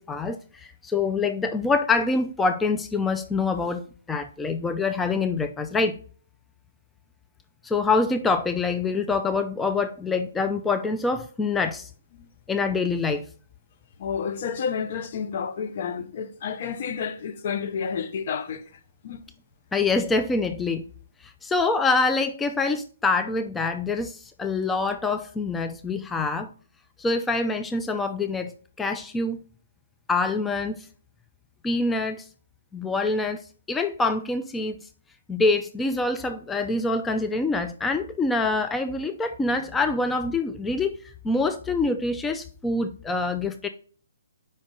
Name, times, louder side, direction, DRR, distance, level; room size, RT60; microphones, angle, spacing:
voice 1, 0.0-3.8 4.1-6.0 7.6-11.9 12.5-13.2 19.7-20.8 21.2-26.5 27.0-29.4 30.1-30.9 31.6-32.3 32.7-34.9 35.3-41.0 41.2-43.7, left 3 dB, 10° left, 0.3 m, -25 dB
voice 2, 14.0-18.6 19.0-19.2, left 6 dB, 50° left, 0.6 m, -30 dB
5.2 x 3.6 x 5.2 m
hypercardioid pair, 140°, 0 cm